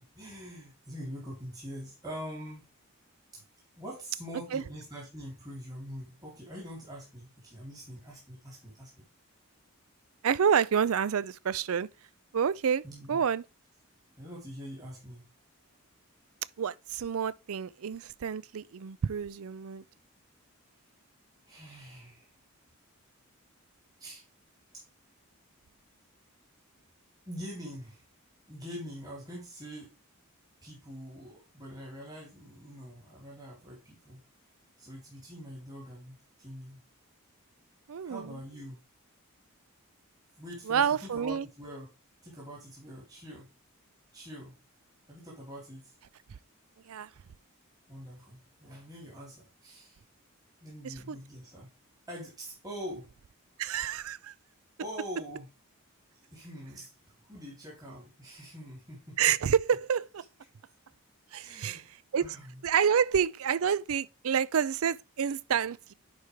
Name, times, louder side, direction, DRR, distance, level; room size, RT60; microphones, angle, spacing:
voice 1, 0.1-2.7 3.3-3.4 3.8-8.9 12.8-13.2 14.2-15.3 21.5-22.3 24.0-24.2 24.7-24.8 27.3-28.0 28.5-29.9 30.6-34.2 34.8-36.8 38.0-38.8 40.4-41.9 42.2-43.5 44.1-44.5 45.1-45.8 47.9-50.0 50.6-51.7 52.1-53.1 54.8-55.5 56.3-59.2 61.4-61.9 62.2-62.6, equal, 15° right, 3.5 m, -44 dB
voice 2, 10.2-11.9 12.3-13.4 16.6-19.8 37.9-38.4 40.7-41.5 46.9-47.1 50.8-51.2 53.6-54.3 59.2-60.2 61.3-61.8 62.1-62.3 62.6-65.9, right 7 dB, 75° right, 0.4 m, -28 dB
10.5 x 4.8 x 3.5 m
head